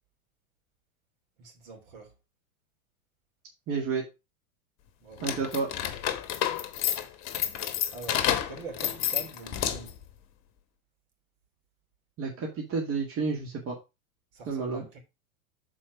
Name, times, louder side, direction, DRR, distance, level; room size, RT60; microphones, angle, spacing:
voice 1, 1.4-2.1 5.0-5.5 7.9-10.0 14.3-15.0, right 4 dB, 55° right, 3.1 m, -44 dB
voice 2, 3.7-4.1 5.2-5.7 12.2-13.8 14.5-14.9, right 4 dB, 30° right, 2.1 m, -30 dB
sound 1, 5.2-10.0, left 11 dB, 35° left, 1.1 m, -30 dB
7.1 x 4.5 x 4.7 m
hypercardioid pair, 100°, 43 cm